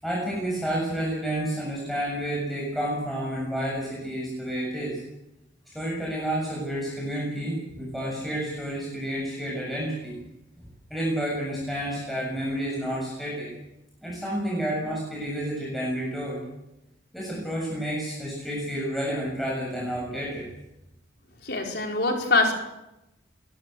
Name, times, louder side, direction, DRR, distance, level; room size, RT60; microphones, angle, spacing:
voice 1, 0.0-5.0 5.7-10.2 10.9-13.5 14.0-16.4 17.1-20.5, right 1 dB, ahead, -5 dB, 7.4 m, -30 dB
voice 2, 21.4-22.5, left 2 dB, 60° left, 1 dB, 5.1 m, -23 dB
23.0 x 18.0 x 8.0 m, 0.91 s
head